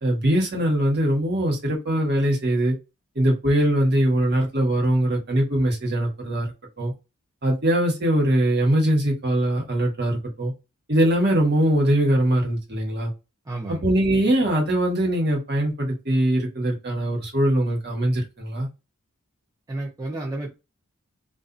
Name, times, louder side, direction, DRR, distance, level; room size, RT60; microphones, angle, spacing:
voice 1, 0.0-2.7 3.1-6.5 6.8-6.9 7.4-10.5 10.9-13.1 13.7-18.7, right 1 dB, 45° right, 1.2 m, -22 dB
voice 2, 13.5-13.8 19.7-20.5, right 2 dB, 15° right, 0.5 m, -31 dB
2.5 x 2.3 x 2.5 m
head